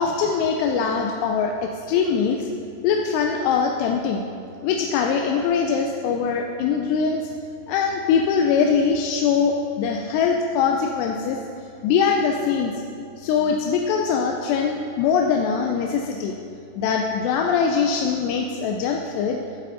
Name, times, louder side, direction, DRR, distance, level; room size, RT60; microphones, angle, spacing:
voice 1, 0.0-2.5 2.8-4.2 4.6-7.3 7.7-11.4 11.8-12.7 13.2-16.4 16.8-19.4, left 6 dB, 85° left, 2 dB, 2.7 m, -22 dB
11.5 x 7.7 x 3.9 m, 2.5 s
omnidirectional pair, 4.8 m